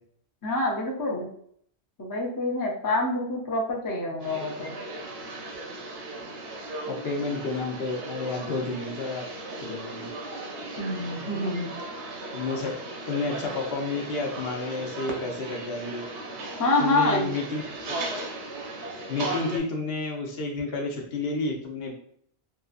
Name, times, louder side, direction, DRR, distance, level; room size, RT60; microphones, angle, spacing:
voice 1, 0.4-1.3 2.0-4.7 10.8-11.7 16.6-17.3, left 2 dB, 30° left, -2 dB, 0.4 m, -26 dB
sound 1, 4.2-19.6, right 2 dB, 85° right, 0.9 m, -37 dB
voice 2, 6.9-9.3 9.6-10.1 12.3-12.7 13.1-16.0 16.8-17.6 19.1-21.9, left 3 dB, 65° left, 1 dB, 0.8 m, -30 dB
2.9 x 2.4 x 2.4 m, 0.63 s
omnidirectional pair, 1.1 m